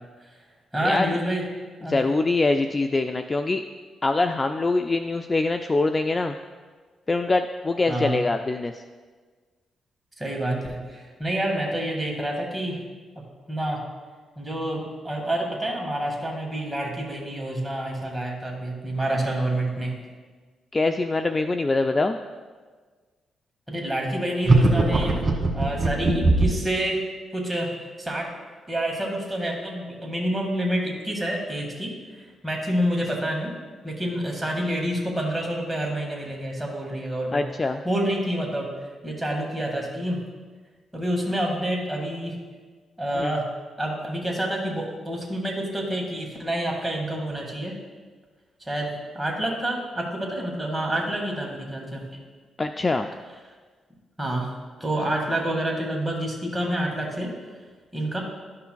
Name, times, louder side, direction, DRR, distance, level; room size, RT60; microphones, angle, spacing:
voice 1, 0.7-1.4 1.8-2.0 7.9-8.2 10.2-12.8 13.2-13.8 14.4-20.0 23.7-25.2 25.5-27.0 27.3-28.3 28.7-33.6 33.8-37.5 37.8-38.7 39.0-40.2 40.9-42.3 43.0-43.4 43.8-47.8 48.6-52.0 54.2-54.5 54.8-57.3 57.9-58.2, right 1 dB, 10° right, -1 dB, 1.9 m, -28 dB
voice 2, 1.9-3.6 4.0-6.4 7.1-8.8 20.7-22.2 37.3-37.8 43.2-43.3 52.6-53.1, left 3 dB, 30° left, 7 dB, 0.3 m, -23 dB
sound 1, 24.4-26.7, right 2 dB, 30° right, 1.6 m, -19 dB
12.5 x 5.7 x 2.3 m, 1.4 s
cardioid pair, 85°, 0 cm